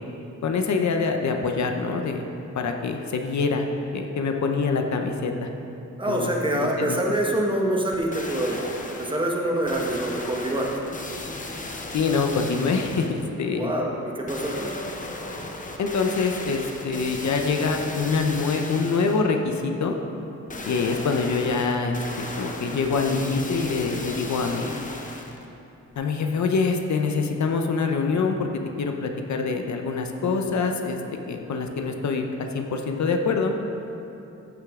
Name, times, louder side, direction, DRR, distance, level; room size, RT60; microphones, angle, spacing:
voice 1, 0.4-2.2 2.5-3.6 3.9-5.5 6.1-7.0 11.9-13.7 15.8-20.0 20.6-24.8 26.0-28.5 28.8-31.0 31.3-33.5, left 4 dB, 65° left, 4 dB, 0.8 m, -25 dB
voice 2, 6.0-10.7 13.4-14.7 20.4-20.7, right 1 dB, 15° right, -1 dB, 1.2 m, -26 dB
sound 1, 7.9-9.2 9.7-13.2 14.3-19.3 20.5-25.5 25.9-26.0, left 2 dB, 25° left, 0.8 m, -36 dB
14.5 x 6.5 x 3.7 m, 2.8 s
wide cardioid pair, 125°, 30 cm